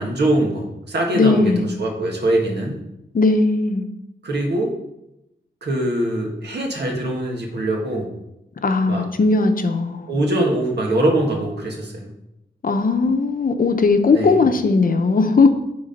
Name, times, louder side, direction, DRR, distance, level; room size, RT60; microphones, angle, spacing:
voice 1, 0.0-1.5 1.8-2.8 4.2-4.7 5.6-8.1 8.9-9.1 10.1-12.1 14.1-14.3, right 1 dB, 65° right, 0 dB, 1.9 m, -22 dB
voice 2, 1.1-1.7 3.1-3.9 8.6-10.1 12.6-15.5, left 3 dB, 50° left, 6 dB, 0.8 m, -18 dB
9.8 x 3.9 x 5.3 m, 0.86 s
wide cardioid pair, 125°, 19 cm